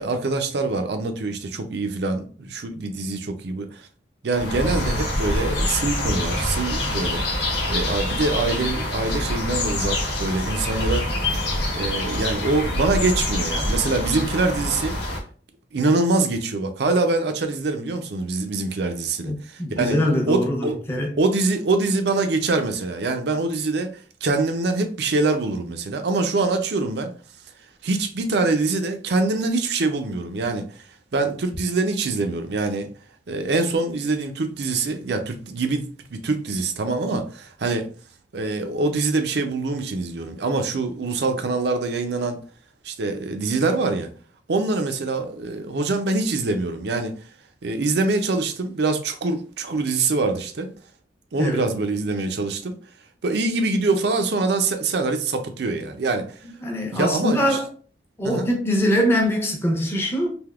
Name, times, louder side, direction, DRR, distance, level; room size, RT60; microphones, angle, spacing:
voice 1, 0.0-3.9 4.2-7.3 7.7-11.1 11.7-14.9 15.7-20.0 20.3-20.8 21.2-27.1 27.8-32.9 33.3-35.8 36.1-37.9 38.3-42.4 42.8-44.1 44.5-47.3 47.6-50.7 51.3-52.7 53.2-56.5 56.9-57.6 58.2-58.5, right 3 dB, 65° right, 0.5 m, -24 dB
sound 1, 4.3-15.2, left 1 dB, 70° left, 1.0 m, -25 dB
voice 2, 19.3-21.1 51.4-51.6 56.6-57.7 58.2-60.4, equal, 15° left, 0.7 m, -23 dB
3.4 x 2.6 x 2.4 m
head